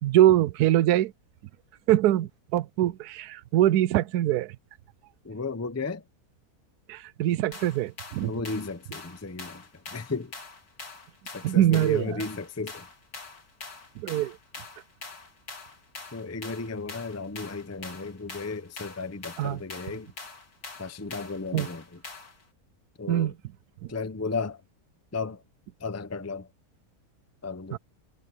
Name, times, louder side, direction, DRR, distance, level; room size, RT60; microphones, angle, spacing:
voice 1, 0.0-1.1 1.9-4.6 6.9-8.3 11.4-12.2 14.0-14.4 19.4-19.6 21.5-21.7 23.1-23.3 27.7-27.8, right 13 dB, 85° right, 1.1 m, -23 dB
voice 2, 5.2-6.0 8.2-10.3 11.2-12.9 16.1-20.1 20.8-22.0 23.0-23.3 23.9-24.6 25.1-25.4 25.8-26.5 27.4-27.8, left 4 dB, 15° left, 0.6 m, -34 dB
sound 1, 7.5-22.4, left 3 dB, 75° left, 3.4 m, -44 dB
omnidirectional pair, 1.6 m